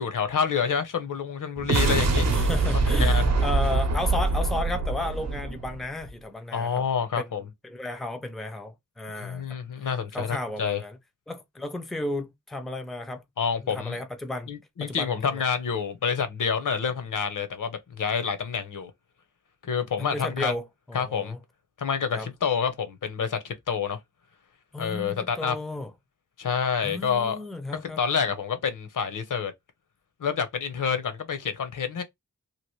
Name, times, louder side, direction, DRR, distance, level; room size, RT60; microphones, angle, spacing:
voice 1, 0.0-2.3 2.9-3.3 6.5-7.5 9.2-10.8 13.4-14.0 14.5-18.9 19.6-20.5 20.9-21.3 21.8-24.0 24.8-25.6 26.4-27.4 28.0-29.5 30.2-32.0, left 6 dB, 75° left, 0.8 m, -28 dB
sound 1, 1.6-6.1, right 3 dB, 55° right, 0.7 m, -24 dB
voice 2, 2.3-6.9 7.2-7.3 7.6-9.4 10.1-11.0 11.3-13.2 13.6-14.5 14.8-15.4 20.0-21.4 22.1-22.3 24.7-25.9 26.8-28.0, left 2 dB, ahead, 0.5 m, -34 dB
3.0 x 2.5 x 3.0 m
wide cardioid pair, 125°, 32 cm